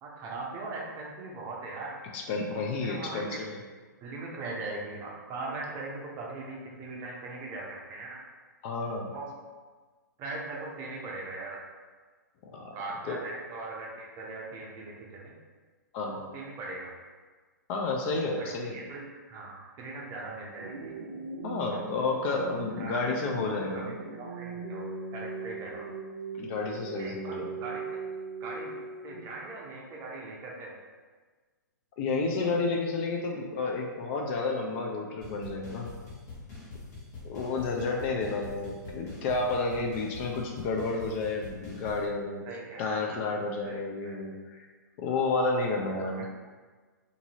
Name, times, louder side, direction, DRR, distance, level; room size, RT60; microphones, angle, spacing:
voice 1, 0.0-2.0 2.5-3.5 4.0-8.3 9.1-9.3 10.2-11.6 12.7-15.4 16.0-16.9 18.4-19.0 19.3-20.9 21.7-25.9 27.0-28.1 28.4-28.8 29.0-30.8 42.4-43.0 43.6-44.2 45.8-46.3, right 3 dB, 30° right, -2 dB, 0.6 m, -40 dB
voice 2, 2.1-3.6 8.6-9.1 12.5-12.7 13.1-13.2 15.9-16.2 17.7-18.8 21.4-23.9 26.4-27.6 32.0-36.0 37.2-42.5 42.8-44.7 45.0-46.3, left 3 dB, 40° left, 1 dB, 0.4 m, -31 dB
sound 1, 20.6-29.5, right 4 dB, 70° right, 0.4 m, -40 dB
sound 2, 35.2-42.1, left 3 dB, 55° left, 1.1 m, -44 dB
2.6 x 2.5 x 2.8 m, 1.4 s
hypercardioid pair, 125°, 10 cm